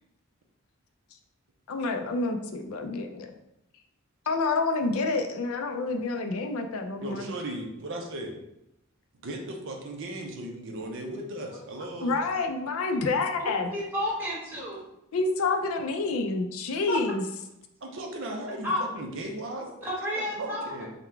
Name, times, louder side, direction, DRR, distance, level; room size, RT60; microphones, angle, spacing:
voice 1, 1.7-3.3 4.3-7.3 12.0-13.7 15.1-17.2, left 3 dB, 70° left, 5 dB, 0.4 m, -28 dB
voice 2, 7.0-8.4 9.2-12.2 17.8-19.7 20.2-20.9, right 1 dB, 60° right, 2 dB, 0.6 m, -36 dB
voice 3, 13.4-14.8 16.9-17.0 18.6-18.8 19.8-20.7, left 1 dB, 10° right, -6 dB, 1.4 m, -31 dB
3.8 x 2.2 x 4.4 m, 0.83 s
head